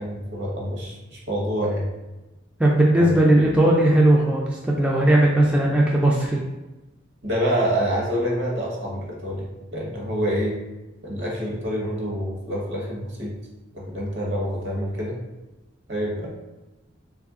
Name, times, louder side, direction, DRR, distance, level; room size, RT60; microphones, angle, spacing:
voice 1, 0.0-1.9 3.0-3.1 7.2-10.6 11.0-13.3 13.7-15.2 15.9-16.3, equal, 65° right, -2 dB, 1.0 m, -27 dB
voice 2, 2.6-6.4, right 1 dB, 5° right, -3 dB, 0.3 m, -18 dB
3.1 x 2.5 x 3.6 m, 1.1 s
head